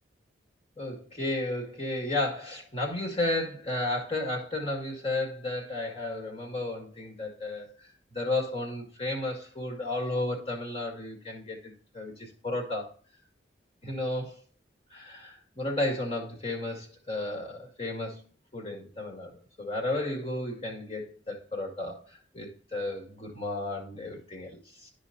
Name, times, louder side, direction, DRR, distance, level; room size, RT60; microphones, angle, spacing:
voice 1, 0.8-12.9 13.8-14.4 14.9-18.2 18.5-19.3 19.6-24.9, left 2 dB, 30° left, 2.0 m, -33 dB
12.0 x 5.2 x 2.7 m
head